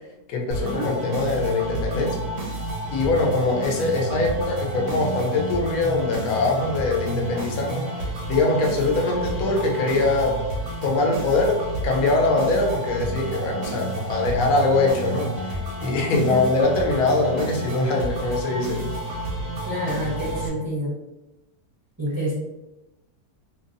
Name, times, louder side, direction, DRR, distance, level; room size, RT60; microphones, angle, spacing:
voice 1, 0.3-2.2 2.9-10.4 10.8-18.9, left 2 dB, 65° left, 0 dB, 1.0 m, -23 dB
sound 1, 0.5-20.5, right 1 dB, 60° right, 0.8 m, -30 dB
voice 2, 16.0-16.4 19.6-20.9 22.0-22.3, equal, 25° right, -10 dB, 0.5 m, -28 dB
2.8 x 2.8 x 2.6 m, 1.0 s
omnidirectional pair, 1.9 m